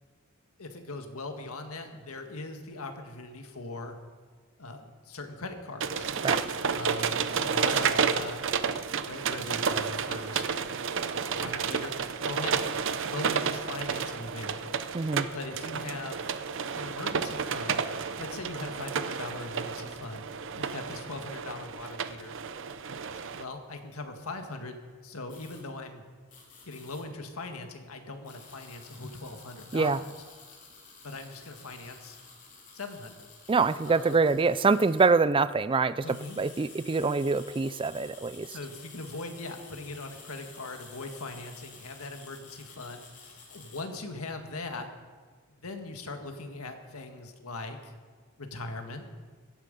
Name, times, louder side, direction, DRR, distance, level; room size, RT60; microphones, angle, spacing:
voice 1, 0.6-4.0 4.6-6.1 6.7-8.4 9.0-10.8 11.2-12.7 12.9-16.3 16.7-20.2 20.5-22.3 23.3-24.8 25.0-26.0 26.6-30.2 31.0-32.2 32.7-33.3 33.8-34.2 36.0-36.4 38.5-44.9 45.6-47.9 48.4-49.0, left 2 dB, 90° left, 5 dB, 1.7 m, -40 dB
sound 1, 5.8-23.4, right 6 dB, 60° right, 0.7 m, -31 dB
voice 2, 14.9-15.3 29.7-30.0 33.5-38.5, right 4 dB, 25° right, 15 dB, 0.4 m, -25 dB
sound 2, 25.3-25.6 26.3-27.0 28.2-35.1 35.9-43.8, left 4 dB, 35° left, 3.3 m, -51 dB
16.5 x 12.5 x 5.3 m, 1.5 s
head